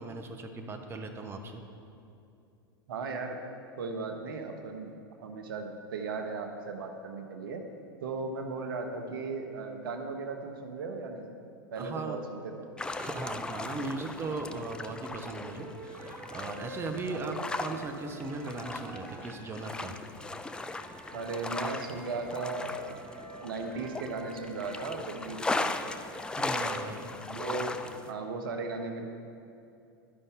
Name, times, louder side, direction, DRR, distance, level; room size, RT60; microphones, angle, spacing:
voice 1, 0.0-1.6 11.7-12.2 13.0-20.0 26.4-27.1, right 3 dB, 20° right, 4 dB, 0.7 m, -38 dB
voice 2, 2.9-3.4 3.8-4.9 5.2-7.6 8.0-11.3 11.7-12.7 17.1-17.3 21.1-23.0 23.4-25.9 26.5-26.9 27.3-27.8 28.1-29.1, right 3 dB, 70° right, 5 dB, 0.8 m, -37 dB
sound 1, 12.8-28.1, left 2 dB, 5° left, 0.3 m, -38 dB
sound 2, 15.4-19.7 20.6-25.2, right 1 dB, 45° right, 1.4 m, -47 dB
12.0 x 5.4 x 3.6 m, 2.6 s
hypercardioid pair, 95°, 12 cm